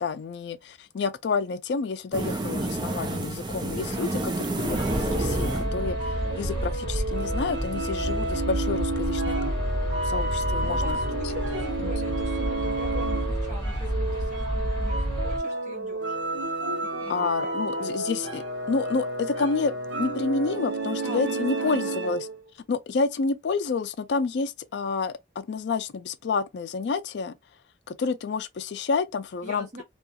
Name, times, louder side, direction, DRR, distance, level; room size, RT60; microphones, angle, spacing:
voice 1, 0.0-9.4 10.0-11.0 11.8-11.9 17.1-22.3 22.7-27.4 27.9-29.8, left 4 dB, 65° left, 0.4 m, -29 dB
sound 1, 2.1-6.7, right 2 dB, 25° right, 0.4 m, -30 dB
sound 2, 4.6-15.4, equal, 30° left, 1.1 m, -30 dB
sound 3, 4.7-22.4, right 2 dB, 85° right, 0.7 m, -31 dB
voice 2, 10.6-16.2 16.8-17.9 21.0-22.2 29.4-29.8, left 1 dB, 45° right, 1.1 m, -42 dB
2.3 x 2.3 x 2.7 m
head